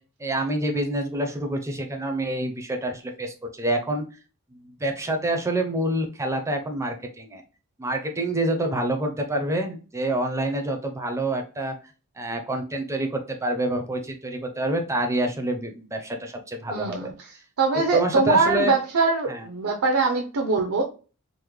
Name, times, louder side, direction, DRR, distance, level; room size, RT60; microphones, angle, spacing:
voice 1, 0.2-4.0 4.8-7.4 7.8-11.7 12.2-17.1 17.9-18.7 19.3-19.4, right 1 dB, 15° right, 4 dB, 0.5 m, -27 dB
voice 2, 16.7-17.1 17.6-20.8, right 4 dB, 75° right, 3 dB, 0.5 m, -22 dB
3.6 x 2.1 x 3.1 m, 0.35 s
head